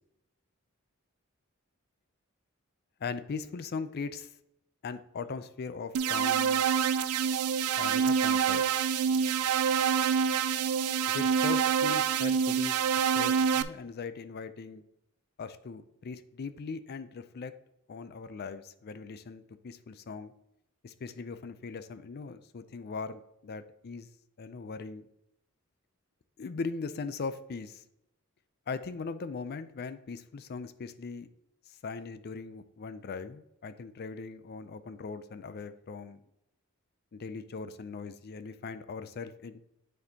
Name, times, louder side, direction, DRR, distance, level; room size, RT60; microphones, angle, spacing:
voice 1, 3.0-4.3 4.8-6.6 7.8-8.6 11.1-14.8 15.4-17.5 17.9-20.3 20.8-24.1 24.4-25.1 26.4-27.8 28.7-31.3 31.7-36.2 37.1-39.6, left 4 dB, 45° left, 12 dB, 0.4 m, -39 dB
sound 1, 5.9-13.6, right 7 dB, 85° right, 0.4 m, -26 dB
9.3 x 4.3 x 2.8 m, 0.81 s
head